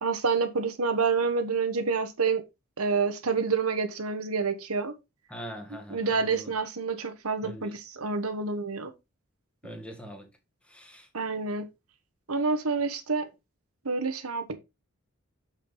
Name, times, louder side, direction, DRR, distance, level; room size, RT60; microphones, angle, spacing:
voice 1, 0.0-2.4 2.8-4.9 5.9-8.9 11.1-11.7 12.3-13.3 13.8-14.6, right 4 dB, 85° right, 1.3 m, -28 dB
voice 2, 5.3-6.5 7.4-7.7 9.6-10.3 10.7-11.1, equal, 5° left, 1.4 m, -42 dB
6.7 x 5.9 x 4.0 m
head